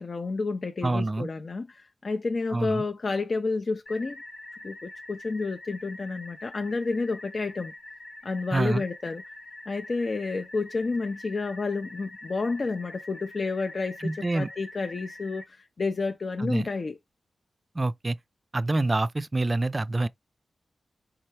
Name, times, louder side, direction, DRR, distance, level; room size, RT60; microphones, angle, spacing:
voice 1, 0.0-4.2 4.6-7.7 8.2-9.2 9.7-17.0, left 3 dB, 55° left, 0.5 m, -30 dB
voice 2, 0.8-1.3 2.5-2.8 8.5-8.8 14.0-14.5 16.4-16.7 17.7-18.2 18.5-20.1, right 2 dB, 35° right, 0.4 m, -26 dB
sound 1, 3.9-15.5, left 2 dB, 75° left, 1.0 m, -45 dB
4.4 x 3.4 x 3.2 m
cardioid pair, 50°, 0 cm